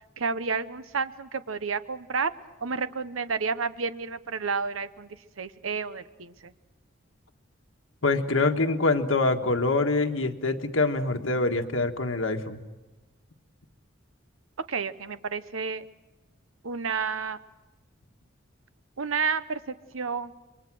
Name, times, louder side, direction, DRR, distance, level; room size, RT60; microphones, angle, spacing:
voice 1, 0.2-2.3 2.6-6.5 14.7-15.8 16.6-17.4 19.0-20.3, right 5 dB, 90° right, 13 dB, 0.8 m, -31 dB
voice 2, 8.0-12.6, left 3 dB, 85° left, 5 dB, 1.6 m, -25 dB
27.5 x 23.0 x 6.2 m, 1.1 s
head